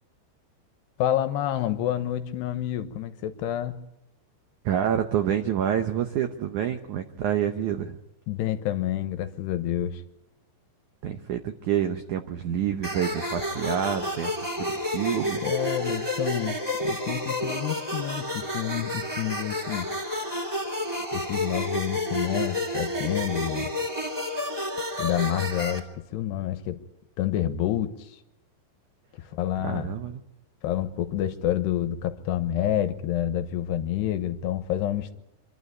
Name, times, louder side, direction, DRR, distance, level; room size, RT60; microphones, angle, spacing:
voice 1, 1.0-3.9 8.3-10.0 15.4-19.9 21.1-23.7 25.0-26.8 27.2-28.1 29.1-29.9 30.6-35.1, left 12 dB, 80° left, 9 dB, 3.1 m, -28 dB
voice 2, 4.6-8.0 11.0-15.4 29.6-30.2, right 9 dB, 85° right, 7 dB, 1.7 m, -28 dB
sound 1, 12.8-25.8, left 1 dB, 10° right, 1.9 m, -30 dB
25.5 x 12.0 x 9.5 m, 0.90 s
omnidirectional pair, 4.9 m